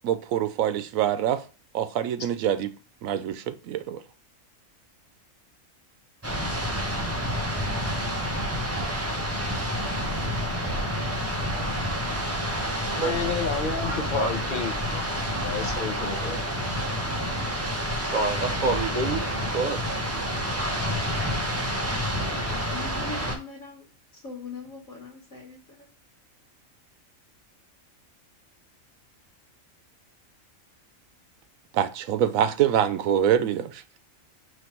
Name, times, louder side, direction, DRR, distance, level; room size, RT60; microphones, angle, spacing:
voice 1, 0.0-1.4 1.7-2.7 3.0-4.0 31.7-33.8, right 10 dB, 90° right, 1.0 m, -25 dB
sound 1, 6.2-23.4, equal, 15° right, 0.5 m, -29 dB
voice 2, 10.2-10.6 13.0-14.7 15.4-16.4, left 6 dB, 45° left, 0.8 m, -31 dB
voice 3, 12.9-14.4 14.9-15.0 15.9-16.0 18.0-20.0, right 3 dB, 65° right, 0.5 m, -30 dB
voice 4, 22.7-25.9, left 3 dB, 80° left, 1.6 m, -41 dB
5.0 x 3.2 x 2.9 m
omnidirectional pair, 1.4 m